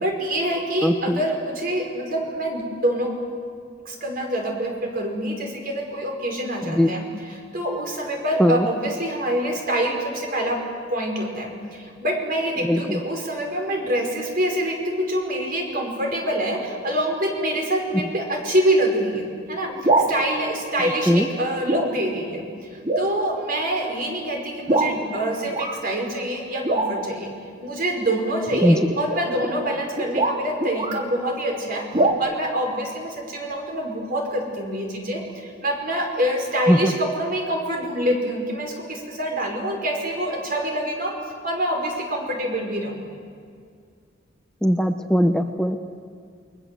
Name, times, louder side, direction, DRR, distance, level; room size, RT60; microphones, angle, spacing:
voice 1, 0.0-3.2 3.8-10.6 10.9-19.7 20.0-22.5 22.9-27.3 27.6-31.8 32.2-41.1 41.4-43.1, right 1 dB, 50° right, 2 dB, 5.1 m, -26 dB
voice 2, 0.8-1.2 6.7-6.9 8.4-8.7 12.6-13.0 17.9-18.1 21.1-21.3 28.6-28.8 36.7-36.9 44.6-45.9, equal, 5° left, 6 dB, 0.7 m, -19 dB
sound 1, 19.7-20.1 21.1-21.3 21.7-22.0 22.3-22.4 22.8-23.1 23.8-23.9 24.7-25.0 25.5-25.8 26.6-27.2 28.5-31.1 31.9-32.1, right 2 dB, 30° right, 2.0 m, -23 dB
28.5 x 22.0 x 7.7 m, 2.2 s
head